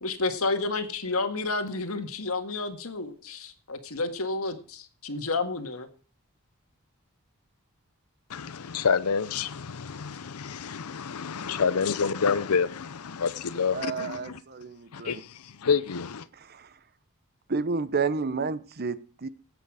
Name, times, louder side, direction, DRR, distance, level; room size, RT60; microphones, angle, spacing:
voice 1, 0.0-5.9, left 3 dB, 70° left, 1.8 m, -30 dB
voice 2, 8.3-14.4 14.9-16.2, left 6 dB, 85° left, 0.6 m, -28 dB
voice 3, 13.7-15.2 16.3-16.7 17.5-19.3, right 4 dB, 45° right, 0.8 m, -31 dB
18.0 x 8.2 x 4.9 m
head